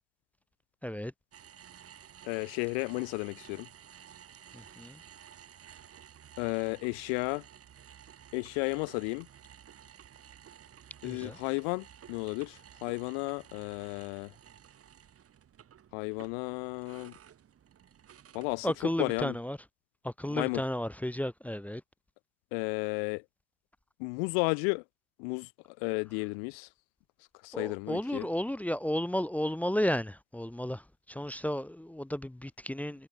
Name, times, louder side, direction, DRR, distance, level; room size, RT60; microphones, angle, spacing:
sound 1, 1.3-19.0, right 9 dB, 35° right, 4.5 m, -54 dB
voice 1, 2.2-3.7 6.4-7.4 8.3-9.3 11.0-14.3 15.9-17.1 18.3-18.7 19.0-19.4 20.3-20.6 22.5-23.2 24.0-24.8 25.2-25.5 25.8-26.7 27.4-28.3, left 40 dB or more, 55° left, 0.6 m, -33 dB
voice 2, 4.5-5.0 11.0-11.4 18.6-19.6 20.0-21.8 27.5-30.8 31.1-33.1, equal, 5° left, 0.8 m, -33 dB
figure-of-eight pair, 65°, 39 cm